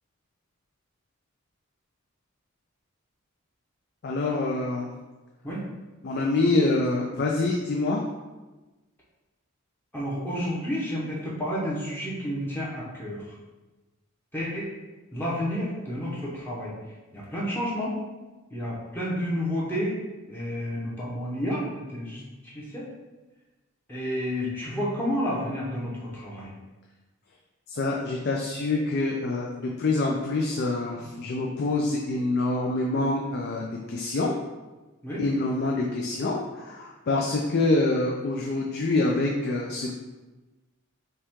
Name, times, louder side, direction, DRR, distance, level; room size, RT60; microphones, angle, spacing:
voice 1, 4.0-4.9 6.0-8.0 27.7-34.4 35.2-39.9, left 2 dB, 50° left, -1 dB, 0.4 m, -26 dB
voice 2, 9.9-13.2 14.3-14.7 15.1-16.8 17.1-17.9 18.5-20.0 20.3-22.9 23.9-26.5 35.0-35.2, equal, 10° left, -7 dB, 0.8 m, -30 dB
5.4 x 2.3 x 3.6 m, 1.2 s
head